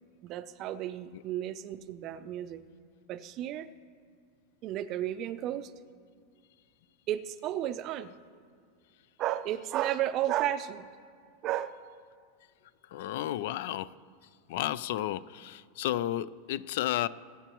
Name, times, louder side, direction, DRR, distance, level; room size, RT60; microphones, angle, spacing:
voice 1, 0.2-2.6 3.1-3.7 4.6-5.7 7.1-8.2 9.2-10.9 11.4-11.8, right 12 dB, 35° right, 0.5 m, -33 dB
voice 2, 12.9-13.9 14.5-17.1, left 13 dB, 65° left, 0.3 m, -32 dB
22.0 x 8.1 x 3.0 m
supercardioid pair, 160°, 0 cm